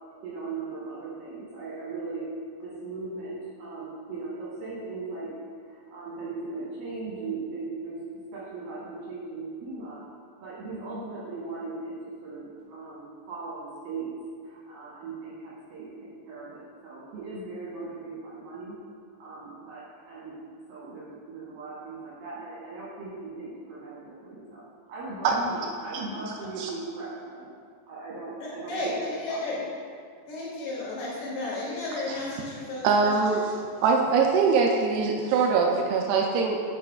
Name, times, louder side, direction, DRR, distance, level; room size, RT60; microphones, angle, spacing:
voice 1, 0.2-2.3 2.6-5.3 5.6-8.0 8.3-10.0 10.4-14.1 14.4-18.8 19.2-20.3 20.7-24.6 24.9-27.5 27.9-29.7, right 3 dB, 65° right, -9 dB, 2.6 m, -38 dB
voice 2, 28.7-29.5 30.3-33.5, left 2 dB, 75° left, -7 dB, 4.2 m, -33 dB
voice 3, 32.8-33.5 33.8-36.6, right 5 dB, 85° right, 1 dB, 2.3 m, -23 dB
9.6 x 6.8 x 2.3 m, 2.1 s
omnidirectional pair, 5.0 m